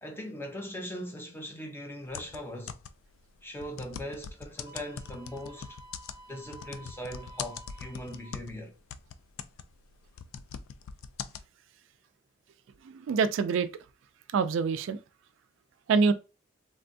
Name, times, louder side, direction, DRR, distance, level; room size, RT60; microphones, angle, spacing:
voice 1, 0.0-2.8 3.4-5.8 6.3-8.8, equal, 10° left, 0.6 m, -40 dB
sound 1, 2.1-3.1 3.6-8.6 8.9-11.4, left 7 dB, 90° left, 0.3 m, -41 dB
Wind instrument woodwind instrument, 4.6-8.4, right 1 dB, 25° right, 0.7 m, -52 dB
voice 2, 12.8-13.7 14.3-15.0 15.9-16.1, right 5 dB, 65° right, 0.3 m, -25 dB
3.3 x 2.1 x 2.6 m
head